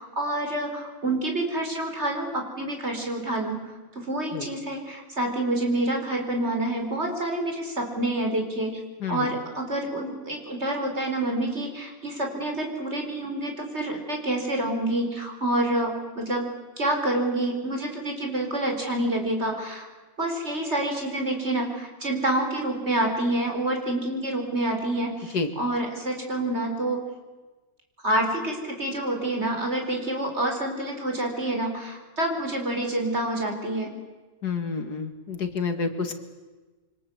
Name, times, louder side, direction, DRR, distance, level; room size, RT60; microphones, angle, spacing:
voice 1, 0.0-3.6 3.9-8.8 9.1-16.5 16.8-19.9 20.2-27.0 28.0-33.9, right 1 dB, 35° right, 3 dB, 5.0 m, -27 dB
voice 2, 34.4-36.1, left 4 dB, 65° left, 7 dB, 2.5 m, -29 dB
27.5 x 25.0 x 8.0 m, 1.3 s
omnidirectional pair, 1.9 m